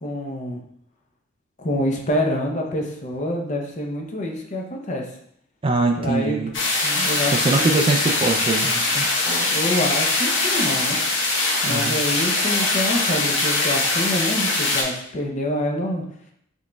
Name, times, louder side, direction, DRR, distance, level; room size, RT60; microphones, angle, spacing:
voice 1, 0.0-0.6 1.6-5.1 6.0-6.4 6.8-7.8 9.2-11.0 11.6-16.0, left 1 dB, 35° left, 1 dB, 0.6 m, -26 dB
voice 2, 5.6-6.5 7.3-9.1 11.7-12.0, right 3 dB, 25° right, 3 dB, 0.3 m, -22 dB
sound 1, 6.5-14.8, left 2 dB, 60° left, 0.9 m, -22 dB
6.2 x 3.1 x 2.3 m, 0.70 s
head